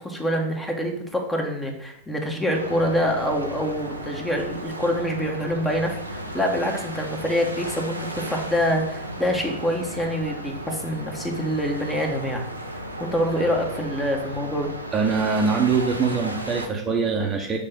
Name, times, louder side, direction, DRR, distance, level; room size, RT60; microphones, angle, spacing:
voice 1, 0.0-12.5 13.0-14.7, equal, 10° left, 2 dB, 1.2 m, -26 dB
sound 1, 2.5-16.7, right 1 dB, 85° right, 0.7 m, -35 dB
voice 2, 14.9-17.6, right 5 dB, 20° right, 1 dB, 1.0 m, -23 dB
6.3 x 3.2 x 5.8 m, 0.76 s
figure-of-eight pair, 90°, 0 cm